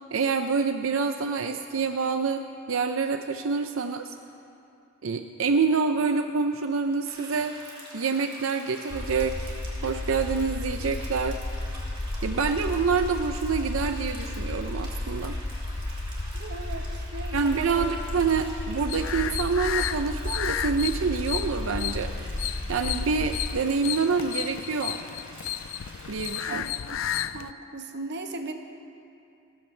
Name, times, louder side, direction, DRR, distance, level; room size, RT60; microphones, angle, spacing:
voice 1, 0.1-4.2 5.0-7.6 7.9-9.5 9.8-11.4 12.2-15.4 17.3-22.1 22.7-25.0 26.1-26.6, right 5 dB, 90° right, 7 dB, 0.6 m, -27 dB
sound 1, 7.0-26.5, right 1 dB, 25° right, 3.4 m, -46 dB
sound 2, 8.9-23.6, left 1 dB, 25° left, 0.6 m, -33 dB
voice 2, 16.3-16.9 17.1-17.8 26.5-26.8 27.3-28.5, right 3 dB, 60° right, 5 dB, 1.2 m, -36 dB
sound 3, 18.9-27.5, left 11 dB, 75° left, 0.4 m, -33 dB
29.0 x 14.5 x 3.3 m, 2.6 s
head